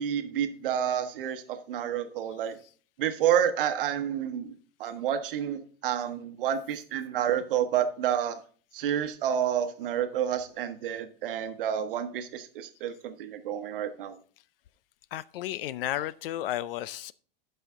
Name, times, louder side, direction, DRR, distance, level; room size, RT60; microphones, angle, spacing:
voice 1, 0.0-2.6 3.0-4.5 4.8-8.4 8.7-14.1, right 9 dB, 65° right, 9 dB, 1.0 m, -29 dB
voice 2, 15.1-17.1, left 13 dB, 70° left, 19 dB, 0.5 m, -33 dB
11.0 x 5.6 x 3.5 m, 0.43 s
supercardioid pair, 170°, 29 cm